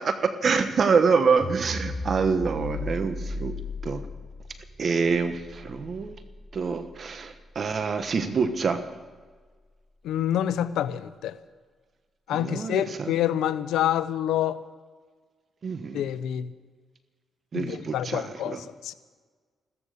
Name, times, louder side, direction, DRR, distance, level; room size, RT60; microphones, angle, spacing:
voice 1, 0.0-3.6 3.8-4.1 4.8-6.1 6.5-8.8 12.3-13.1 15.6-16.0 17.5-18.6, right 5 dB, 50° right, 9 dB, 1.2 m, -26 dB
sound 1, 1.4-7.7, left 2 dB, 15° left, 2.9 m, -36 dB
voice 2, 10.0-11.4 12.3-14.6 15.9-16.5 17.5-18.9, left 11 dB, 90° left, 14 dB, 0.7 m, -27 dB
15.5 x 14.0 x 6.7 m, 1.5 s
cardioid pair, 75°, 0 cm